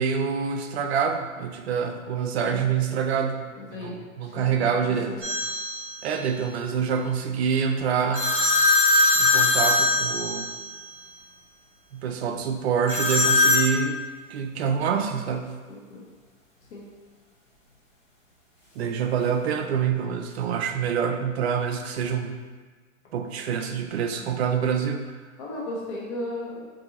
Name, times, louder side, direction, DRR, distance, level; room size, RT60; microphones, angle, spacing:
voice 1, 0.0-3.5 3.8-5.1 6.0-8.3 9.2-10.5 11.9-14.0 14.3-15.5 18.8-22.3 23.1-25.1, right 7 dB, 50° right, 5 dB, 0.5 m, -26 dB
voice 2, 3.6-4.0 4.2-5.1 6.8-6.9 15.7-16.0 16.7-16.8 25.4-26.7, left 2 dB, 55° left, -4 dB, 1.1 m, -35 dB
sound 1, 5.2-5.9 8.1-10.8 12.9-13.7, left 3 dB, 5° left, 0.7 m, -21 dB
2.7 x 2.6 x 3.9 m, 1.5 s
hypercardioid pair, 115°, 41 cm